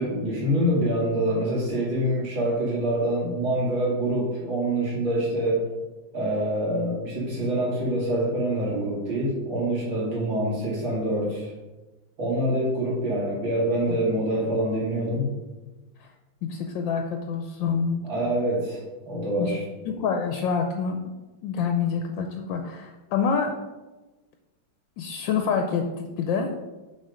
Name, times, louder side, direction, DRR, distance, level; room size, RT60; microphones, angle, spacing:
voice 1, 0.0-5.7 6.1-11.5 12.2-15.3 18.0-19.6, right 1 dB, 70° right, -6 dB, 3.0 m, -25 dB
voice 2, 16.4-18.0 19.4-19.5 19.8-21.0 21.4-23.6 25.0-26.5, left 6 dB, 75° left, 4 dB, 1.2 m, -27 dB
6.3 x 4.1 x 5.0 m, 1.1 s
omnidirectional pair, 2.2 m